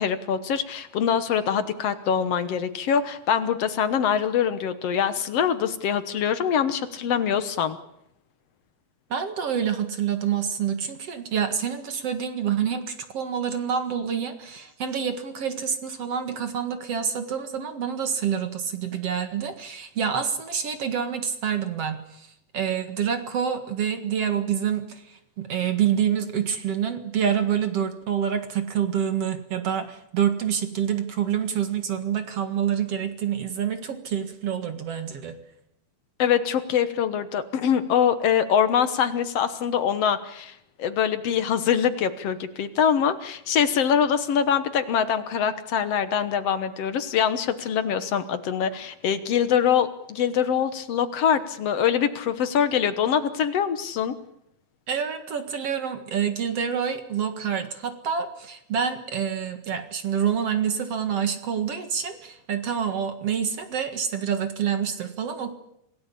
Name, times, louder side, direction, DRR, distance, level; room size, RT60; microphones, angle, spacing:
voice 1, 0.0-7.8 36.2-54.1, left 8 dB, 65° left, 11 dB, 1.6 m, -24 dB
voice 2, 9.1-22.3 22.5-35.4 54.9-65.5, right 8 dB, 50° right, 8 dB, 2.3 m, -27 dB
27.0 x 17.5 x 8.5 m, 0.80 s
omnidirectional pair, 4.2 m